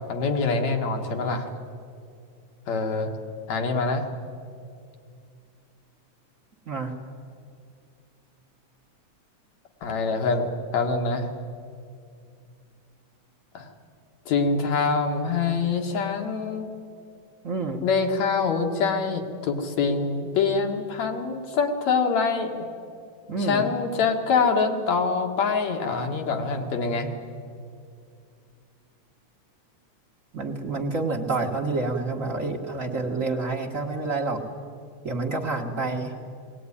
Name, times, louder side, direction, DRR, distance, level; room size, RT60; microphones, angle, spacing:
voice 1, 0.1-1.5 2.7-3.1 3.5-4.0 9.8-11.3 13.5-13.7 14.3-16.7 17.8-22.6 23.4-27.1, left 4 dB, 70° left, 3 dB, 3.0 m, -25 dB
voice 2, 17.4-17.8 23.3-23.7 26.9-27.2 30.3-34.4 35.0-36.1, right 3 dB, 40° right, 0 dB, 1.1 m, -28 dB
20.5 x 18.0 x 9.8 m, 2.4 s
omnidirectional pair, 3.3 m